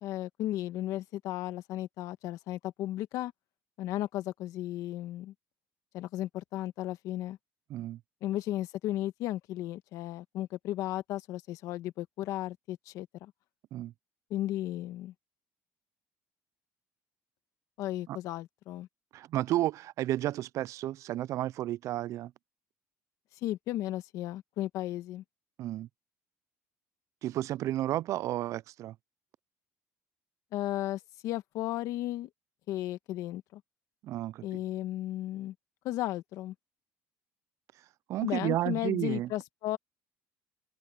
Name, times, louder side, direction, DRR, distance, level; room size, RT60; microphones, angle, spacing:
voice 1, 0.0-3.3 3.8-5.3 5.9-7.4 8.2-13.3 14.3-15.1 17.8-18.9 23.4-25.2 30.5-32.3 32.7-33.6 34.4-35.5 35.8-36.5 38.2-39.8, left 14 dB, 70° left, 1.5 m, -35 dB
voice 2, 19.1-22.3 25.6-25.9 27.2-29.0 34.0-34.6 38.1-39.3, right 14 dB, 60° right, 0.3 m, -32 dB
open air
cardioid pair, 100°, 6 cm